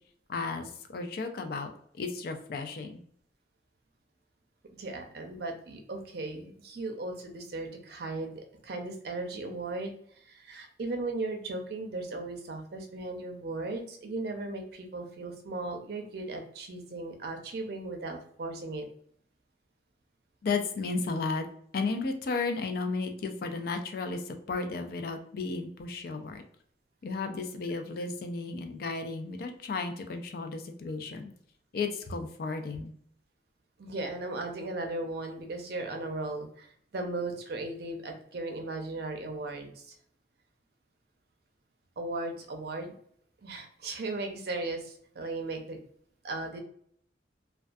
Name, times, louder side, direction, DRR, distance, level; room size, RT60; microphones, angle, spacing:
voice 1, 0.3-3.0 20.4-21.5 21.7-26.4 27.0-31.3 31.7-32.9, left 4 dB, 55° left, 6 dB, 0.3 m, -34 dB
voice 2, 4.8-8.3 8.6-18.9 33.8-39.9 42.0-42.9 43.4-45.8 46.2-46.6, right 2 dB, 60° right, 4 dB, 0.5 m, -37 dB
2.3 x 2.3 x 2.5 m, 0.64 s
head